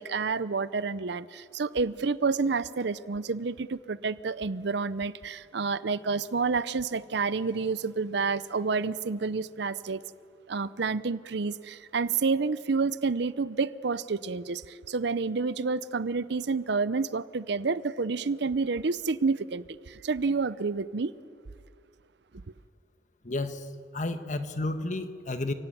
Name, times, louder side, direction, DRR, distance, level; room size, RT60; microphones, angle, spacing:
voice 1, 0.0-10.0 10.5-21.1, right 4 dB, 60° right, 17 dB, 0.6 m, -29 dB
voice 2, 23.2-25.5, left 2 dB, 40° left, 9 dB, 1.4 m, -32 dB
29.5 x 17.0 x 9.2 m, 2.2 s
head